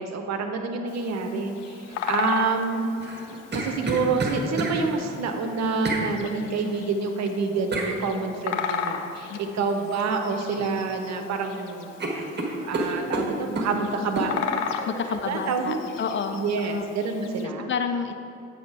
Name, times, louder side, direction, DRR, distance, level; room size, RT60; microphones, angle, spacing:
voice 1, 0.0-2.9 3.5-11.9 12.6-14.6 15.1-15.8 16.3-17.7, right 4 dB, 45° right, 5 dB, 0.9 m, -27 dB
Bird vocalization bird call bird song, 0.9-17.5, left 7 dB, 80° left, 0.5 m, -36 dB
sound 1, 3.0-4.8 5.8-6.1 7.7-7.9 9.9-10.2 10.6-11.2 11.5-11.7 12.0-13.7 14.2-14.3, right 2 dB, 30° right, 1.4 m, -29 dB
voice 2, 14.9-16.9 17.7-18.1, left 6 dB, 30° left, 6 dB, 0.5 m, -29 dB
8.4 x 5.7 x 4.7 m, 2.6 s
figure-of-eight pair, 45°, 37 cm